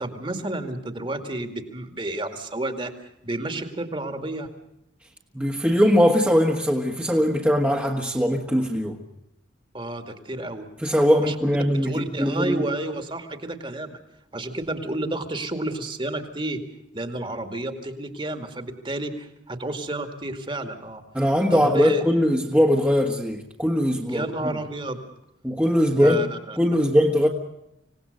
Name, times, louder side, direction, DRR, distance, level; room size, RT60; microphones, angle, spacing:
voice 1, 0.0-2.9 3.2-4.5 9.7-10.7 11.2-11.3 11.7-14.0 14.3-16.6 16.9-21.0 21.5-22.0 24.1-25.0 25.9-26.6, right 2 dB, 25° right, 7 dB, 2.2 m, -30 dB
voice 2, 5.3-9.0 10.8-12.6 21.1-24.3 25.4-26.2 26.6-27.3, equal, 10° right, -1 dB, 1.6 m, -21 dB
26.0 x 18.0 x 6.7 m, 0.82 s
head